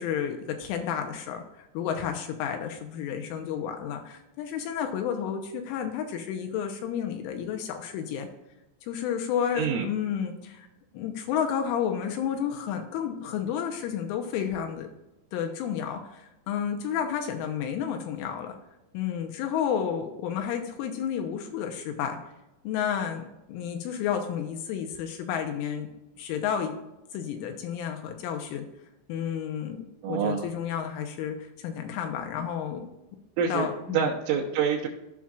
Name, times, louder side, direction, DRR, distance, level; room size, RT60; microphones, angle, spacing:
voice 1, 0.0-8.3 8.9-10.7 10.9-14.9 15.3-18.6 18.9-22.2 22.6-25.9 26.2-26.7 27.1-28.7 29.1-32.9 33.5-34.1, left 8 dB, 80° left, 5 dB, 3.1 m, -31 dB
voice 2, 9.6-9.9 30.0-30.4 33.4-33.7 33.9-34.9, right 7 dB, 80° right, -4 dB, 3.5 m, -26 dB
14.5 x 5.8 x 2.5 m, 0.94 s
omnidirectional pair, 5.9 m